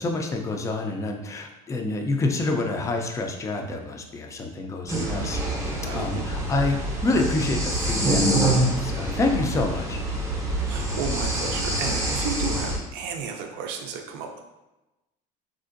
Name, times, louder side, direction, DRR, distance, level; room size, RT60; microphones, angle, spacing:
voice 1, 0.0-10.0, left 2 dB, 15° left, 3 dB, 0.3 m, -28 dB
sound 1, 4.9-12.8, right 1 dB, 15° right, 0.6 m, -26 dB
voice 2, 4.9-5.3 5.8-6.2 10.7-14.4, right 5 dB, 70° right, 4 dB, 0.5 m, -33 dB
3.6 x 2.5 x 2.4 m, 1.0 s
supercardioid pair, 110°, 18 cm